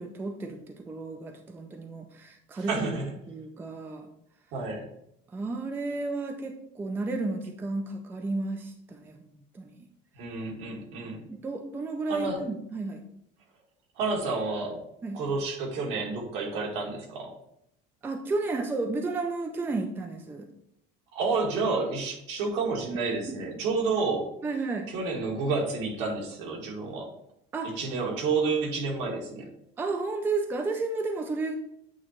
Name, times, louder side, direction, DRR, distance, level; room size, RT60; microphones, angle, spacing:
voice 1, 0.0-2.9 3.3-4.1 5.3-9.2 9.5-9.9 11.3-13.1 15.0-15.2 18.0-20.5 23.3-23.4 24.4-24.9 27.5-27.8 29.8-31.6, right 3 dB, 10° right, 5 dB, 0.4 m, -32 dB
voice 2, 2.5-3.1 4.5-4.9 10.1-11.2 12.1-12.4 14.0-14.8 15.1-17.3 21.1-24.3 24.9-27.1 27.6-29.5, right 4 dB, 70° right, -1 dB, 1.9 m, -30 dB
8.6 x 2.9 x 4.3 m, 0.75 s
cardioid pair, 175°, 20 cm